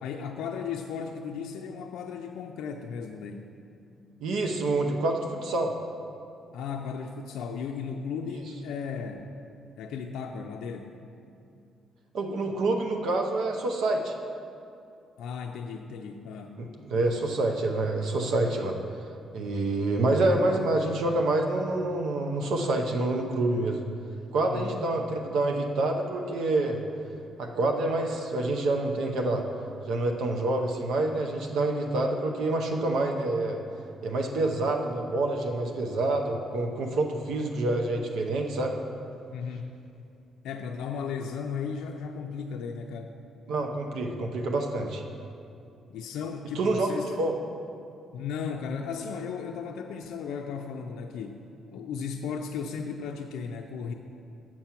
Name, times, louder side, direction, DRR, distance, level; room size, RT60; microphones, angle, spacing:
voice 1, 0.0-3.5 6.5-9.3 9.8-11.1 15.2-16.7 24.5-25.1 39.3-39.7 40.4-43.1 45.9-47.1 48.1-51.5 51.7-53.9, left 6 dB, 85° left, 2 dB, 0.4 m, -35 dB
voice 2, 4.2-5.7 12.1-14.1 16.6-18.8 19.3-23.8 24.3-26.8 27.4-29.4 29.9-33.6 34.0-38.7 43.5-45.0 46.5-46.9 47.2-47.3, right 2 dB, 80° right, 3 dB, 0.7 m, -27 dB
7.5 x 5.9 x 5.6 m, 2.5 s
cardioid pair, 90°, 0 cm